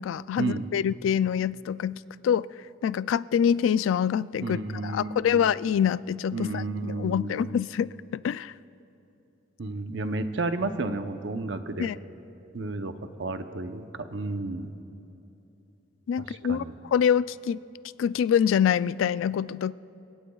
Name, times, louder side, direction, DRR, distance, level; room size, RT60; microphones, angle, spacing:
voice 1, 0.0-2.5 2.8-8.5 11.8-12.0 16.1-17.6 18.0-19.7, left 8 dB, 85° left, 18 dB, 0.3 m, -26 dB
voice 2, 4.4-5.5 6.3-7.5 9.6-11.9 12.5-14.7 16.2-16.7, right 2 dB, 65° right, 8 dB, 0.7 m, -32 dB
28.5 x 17.0 x 2.3 m, 2.9 s
head